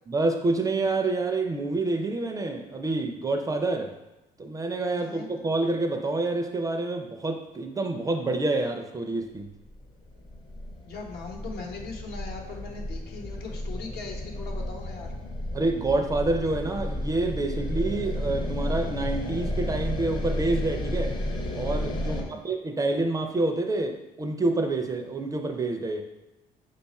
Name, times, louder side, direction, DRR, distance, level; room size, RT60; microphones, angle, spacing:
voice 1, 0.1-3.9 4.4-9.5 15.5-21.2 21.5-26.0, right 2 dB, 20° right, 5 dB, 0.4 m, -27 dB
voice 2, 4.9-5.3 10.8-15.1 22.0-22.4, left 4 dB, 70° left, 1 dB, 0.9 m, -40 dB
sound 1, 9.7-22.2, left 1 dB, 25° left, 0.6 m, -32 dB
5.0 x 2.3 x 4.1 m, 0.99 s
cardioid pair, 110°, 17 cm